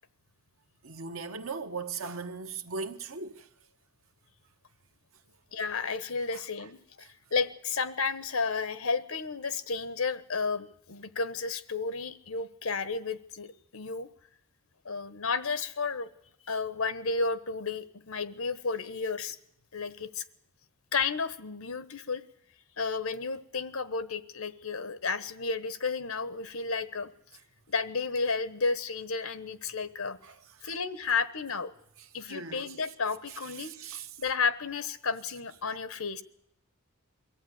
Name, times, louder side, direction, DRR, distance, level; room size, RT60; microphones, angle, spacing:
voice 1, 0.8-3.5 30.2-30.7 32.3-32.7 33.5-34.1, right 4 dB, 75° right, 1.4 m, -38 dB
voice 2, 5.5-14.1 14.8-16.1 16.4-19.4 19.7-20.2 20.9-22.2 22.8-27.1 27.7-30.2 30.6-31.7 32.1-33.7 34.2-36.2, left 4 dB, 85° left, 1.2 m, -32 dB
23.0 x 15.0 x 9.5 m
head